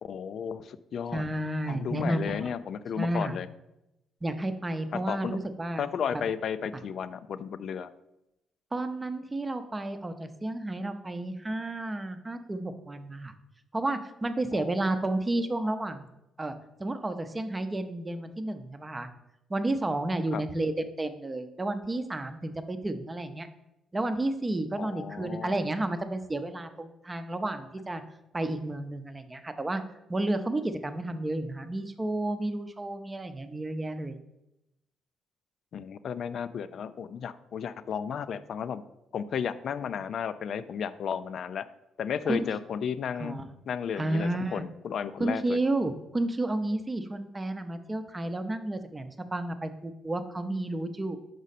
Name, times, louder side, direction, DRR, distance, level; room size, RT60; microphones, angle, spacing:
voice 1, 0.0-1.2 1.7-3.5 4.9-5.4 5.8-7.9 14.5-14.7 20.3-20.4 24.8-25.6 35.7-38.8 39.1-41.7 42.0-43.4 43.7-45.6, left 7 dB, 60° left, 13 dB, 0.3 m, -33 dB
voice 2, 1.1-2.5 3.0-3.4 4.2-5.8 6.1-6.2 6.7-6.8 8.7-13.3 13.7-16.1 16.4-19.1 19.5-23.5 23.9-28.0 28.3-29.8 30.1-34.2 42.2-42.5 43.2-43.5 44.0-44.6 45.2-51.2, right 2 dB, 20° right, 9 dB, 0.6 m, -31 dB
6.2 x 5.1 x 4.1 m, 0.90 s
cardioid pair, 90°, 0 cm